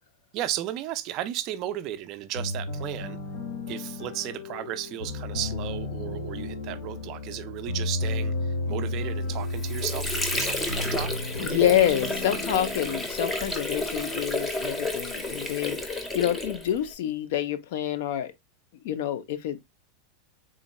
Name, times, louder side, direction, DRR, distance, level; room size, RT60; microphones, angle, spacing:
voice 1, 0.3-3.2 3.7-11.1 11.4-11.7, right 13 dB, 35° right, 0.3 m, -34 dB
sound 1, 2.3-14.1, left 2 dB, 85° left, 1.4 m, -33 dB
Water / Sink (filling or washing), 9.3-16.9, left 2 dB, 10° left, 0.6 m, -31 dB
voice 2, 11.4-18.3 18.8-19.6, left 11 dB, 60° left, 0.5 m, -27 dB
3.7 x 2.1 x 4.0 m
supercardioid pair, 175°, 0 cm